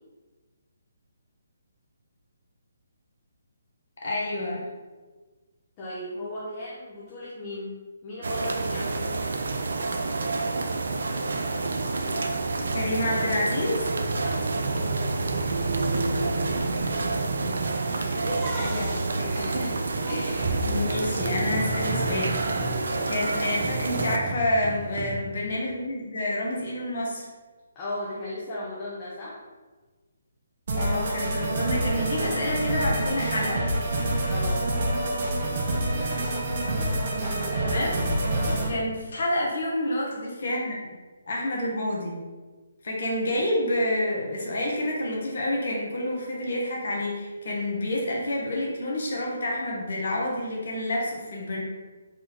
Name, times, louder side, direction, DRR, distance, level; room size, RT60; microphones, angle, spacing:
voice 1, 4.0-4.7 12.7-13.9 18.5-19.8 20.1-22.4 23.1-27.2 30.7-33.7 37.6-38.0 38.7-40.8 41.3-42.1 42.8-51.6, left 1 dB, 60° left, -3 dB, 1.3 m, -28 dB
voice 2, 5.8-8.9 14.2-14.6 20.5-20.6 22.6-23.1 27.7-29.4 34.3-34.6 37.2-37.8 38.4-38.6, left 1 dB, 25° left, -8 dB, 1.0 m, -36 dB
sound 1, 8.2-24.2, right 3 dB, 70° right, 0.4 m, -28 dB
sound 2, 17.8-25.2, right 2 dB, 20° right, 1.0 m, -34 dB
sound 3, 30.7-38.7, right 1 dB, 50° right, 1.0 m, -27 dB
4.2 x 2.8 x 3.8 m, 1.3 s
figure-of-eight pair, 150°, 0 cm